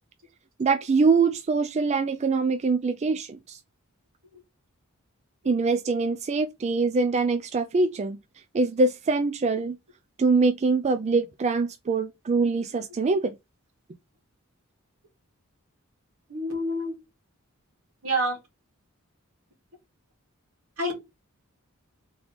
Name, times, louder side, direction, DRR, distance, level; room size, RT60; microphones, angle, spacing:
voice 1, 0.6-3.6 5.5-8.2 8.5-9.8 10.2-13.4, right 4 dB, 30° right, 0.3 m, -24 dB
voice 2, 16.3-17.0 18.0-18.4 20.8-20.9, right 1 dB, 80° right, 2.2 m, -27 dB
3.7 x 3.5 x 3.0 m
head